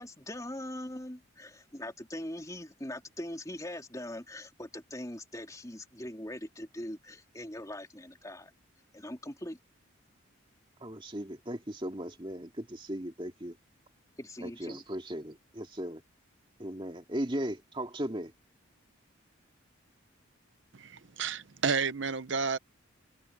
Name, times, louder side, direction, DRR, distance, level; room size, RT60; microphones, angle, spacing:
voice 1, 0.0-8.5 8.9-9.6 14.2-14.8, left 1 dB, 15° left, 3.5 m, -41 dB
voice 2, 10.8-13.6 14.4-16.0 16.6-18.3, right 1 dB, 25° right, 2.3 m, -37 dB
voice 3, 20.7-22.6, right 5 dB, 60° right, 0.8 m, -31 dB
head